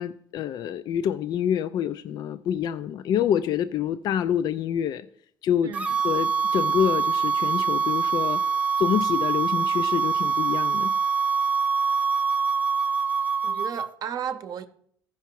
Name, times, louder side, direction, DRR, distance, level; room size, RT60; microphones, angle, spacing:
voice 1, 0.0-5.1 5.4-8.4 8.8-10.9, left 9 dB, 55° left, 0.3 m, -27 dB
sound 1, 5.7-13.9, right 5 dB, 15° right, 0.6 m, -24 dB
voice 2, 13.4-14.7, right 8 dB, 50° right, 0.7 m, -33 dB
14.5 x 5.7 x 4.6 m
cardioid pair, 135°, 8 cm